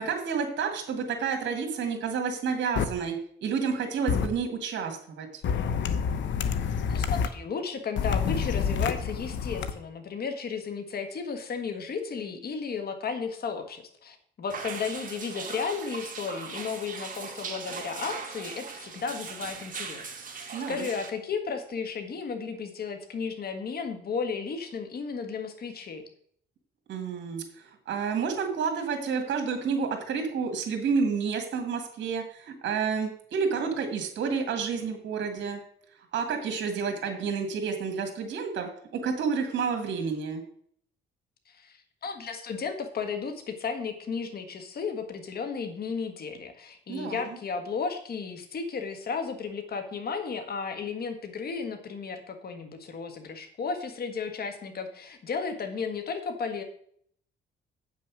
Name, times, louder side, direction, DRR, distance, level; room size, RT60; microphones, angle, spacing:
voice 1, 0.0-5.4 20.5-20.9 26.9-35.6 36.1-40.4 46.9-47.2, right 5 dB, 65° right, 3 dB, 2.2 m, -30 dB
sound 1, 2.8-2.9 4.1-4.3 5.4-7.3 8.0-9.7, left 6 dB, 70° left, 0.9 m, -27 dB
voice 2, 6.9-26.0 41.5-56.6, left 5 dB, 50° left, 6 dB, 1.6 m, -34 dB
sound 2, 14.5-21.1, right 5 dB, 40° right, 1.9 m, -39 dB
8.3 x 6.3 x 6.2 m, 0.63 s
cardioid pair, 90°, 20 cm